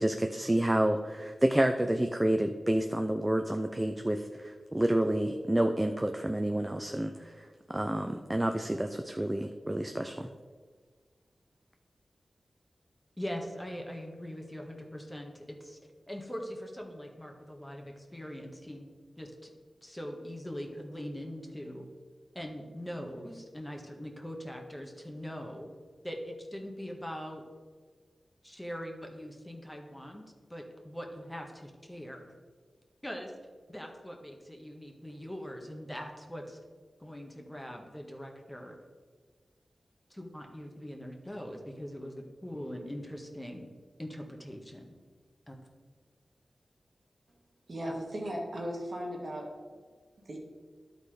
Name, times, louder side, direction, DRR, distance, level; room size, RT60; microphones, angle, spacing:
voice 1, 0.0-10.3, right 1 dB, 15° right, 5 dB, 0.6 m, -29 dB
voice 2, 13.2-15.8 16.1-18.9 19.2-19.5 19.8-21.9 22.3-25.7 26.0-27.4 28.4-30.2 30.5-32.3 33.0-33.3 33.7-36.6 37.0-38.8 40.1-43.7 44.0-45.0 45.5-45.6, equal, 15° left, 2 dB, 1.5 m, -42 dB
voice 3, 47.7-49.5 50.3-50.4, equal, 60° right, -1 dB, 1.9 m, -36 dB
11.5 x 4.1 x 5.0 m, 1.5 s
cardioid pair, 50°, 0 cm